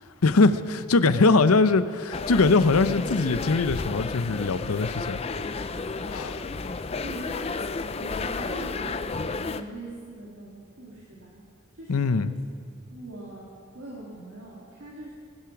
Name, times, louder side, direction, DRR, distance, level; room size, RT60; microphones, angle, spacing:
voice 1, 0.2-5.2 6.1-6.5 11.9-12.3, left 3 dB, 90° left, 12 dB, 0.7 m, -22 dB
sound 1, 2.1-9.6, left 4 dB, 30° left, 0.4 m, -32 dB
voice 2, 7.0-7.5 8.0-11.4 11.7-12.1 12.9-13.5 13.7-15.1, right 1 dB, 60° right, -5 dB, 2.3 m, -42 dB
19.5 x 12.0 x 5.9 m, 2.2 s
head